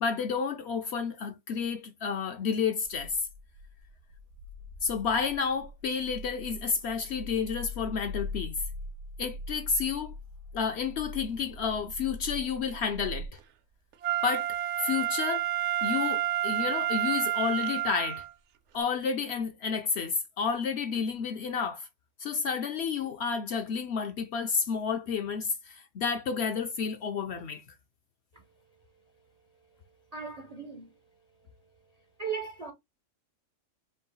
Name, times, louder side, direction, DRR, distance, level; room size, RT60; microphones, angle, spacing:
voice 1, 0.0-3.3 4.8-8.6 9.2-10.2 10.5-13.4 14.2-14.5 14.8-15.5 15.8-18.2 18.7-21.9 22.2-27.6, left 6 dB, 65° left, 0.7 m, -30 dB
sound 1, 2.8-13.3, left 1 dB, 90° right, 1.1 m, -42 dB
Wind instrument woodwind instrument, 14.0-18.3 18.8-18.9, right 12 dB, 65° right, 0.8 m, -29 dB
voice 2, 30.1-31.0 32.2-32.7, right 6 dB, 45° right, 0.5 m, -37 dB
4.6 x 2.4 x 3.9 m
omnidirectional pair, 1.4 m